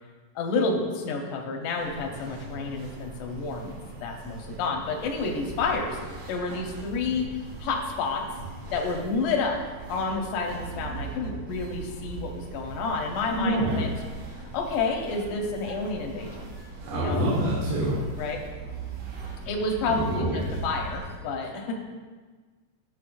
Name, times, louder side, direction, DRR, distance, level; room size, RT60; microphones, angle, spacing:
voice 1, 0.4-3.7 4.0-6.0 6.3-7.3 7.6-8.2 8.7-9.6 9.9-13.9 14.4-16.4 16.9-17.2 18.2-18.4 19.5-21.7, left 4 dB, 75° left, 0 dB, 1.9 m, -29 dB
sound 1, 1.8-21.2, right 4 dB, 60° right, 2.5 m, -40 dB
voice 2, 13.4-13.8 16.9-18.0 19.9-20.5, right 1 dB, 80° right, -8 dB, 3.8 m, -26 dB
12.5 x 6.6 x 2.5 m, 1.4 s
omnidirectional pair, 4.9 m